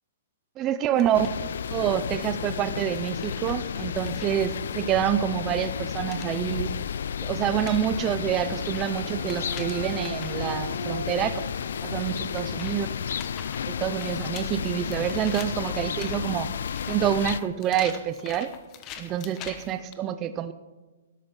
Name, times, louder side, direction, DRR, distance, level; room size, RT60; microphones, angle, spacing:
voice 1, 0.6-1.3 1.7-6.7 7.2-11.4 11.8-12.9 13.7-16.5 16.9-18.5 19.0-20.5, right 10 dB, 20° right, 11 dB, 0.5 m, -27 dB
sound 1, 1.0-1.4 2.0-2.3 2.9-4.4 5.9-6.7 7.2-7.3 7.5-10.4 11.1-11.2 12.2-19.9, left 9 dB, 25° left, 1.1 m, -44 dB
sound 2, 1.1-17.4, left 8 dB, 70° left, 0.4 m, -32 dB
sound 3, 8.0-13.6, right 1 dB, 85° right, 3.8 m, -41 dB
13.0 x 12.0 x 5.3 m, 1.2 s
hypercardioid pair, 160°, 0 cm